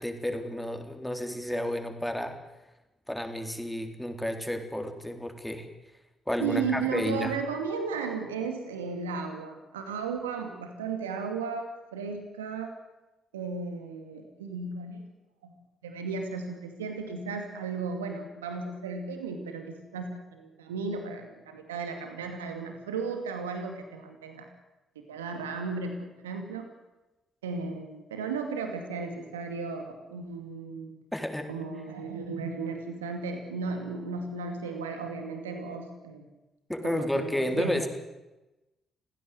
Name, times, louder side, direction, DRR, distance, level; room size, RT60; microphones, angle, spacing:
voice 1, 0.0-2.4 3.1-5.7 6.3-7.3 31.1-31.5 36.7-37.9, left 1 dB, 5° left, 5 dB, 4.0 m, -31 dB
voice 2, 6.4-12.7 13.3-15.0 15.4-15.5 15.8-24.5 25.1-26.7 27.4-30.9 31.5-36.3 36.8-37.8, right 4 dB, 85° right, 5 dB, 2.4 m, -35 dB
26.5 x 16.5 x 8.0 m, 1.0 s
hypercardioid pair, 45°, 0 cm